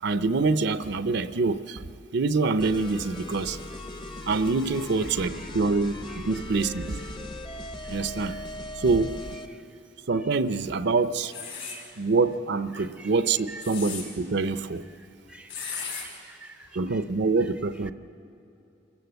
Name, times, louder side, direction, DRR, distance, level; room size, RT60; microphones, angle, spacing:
voice 1, 0.0-1.8 2.1-3.6 4.3-7.3 7.9-8.4 8.8-9.2 10.1-11.3 12.0-14.8 16.7-17.9, right 3 dB, 60° right, 12 dB, 0.6 m, -25 dB
sound 1, 2.6-9.5, left 1 dB, 25° left, 0.9 m, -39 dB
voice 2, 5.2-5.5 6.1-6.2 7.8-8.0 8.3-8.4 9.5-9.6 11.6-11.9 12.7-13.1 13.5-13.6 15.3-17.0, right 2 dB, 5° right, 8 dB, 0.5 m, -47 dB
sound 2, 11.3-11.8 13.4-14.0 15.5-16.1, left 6 dB, 75° left, 5.7 m, -35 dB
26.5 x 15.0 x 8.0 m, 2.8 s
head